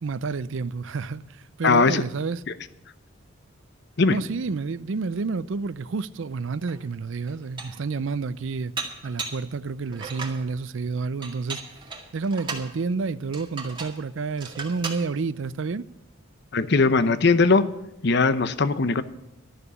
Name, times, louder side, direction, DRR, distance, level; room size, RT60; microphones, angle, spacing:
voice 1, 0.0-2.4 4.1-8.7 9.0-11.6 12.1-15.9, right 4 dB, 65° right, 0.5 m, -29 dB
voice 2, 1.6-2.0 4.0-4.2 16.5-17.7 18.0-19.0, left 4 dB, 55° left, 0.7 m, -19 dB
Dishes pots and pans, 6.7-6.8 7.3-7.9 8.8-9.5 9.9-10.4 11.2-12.7 13.3-14.0 14.4-15.0, right 4 dB, 20° right, 2.0 m, -36 dB
12.5 x 6.9 x 10.0 m
head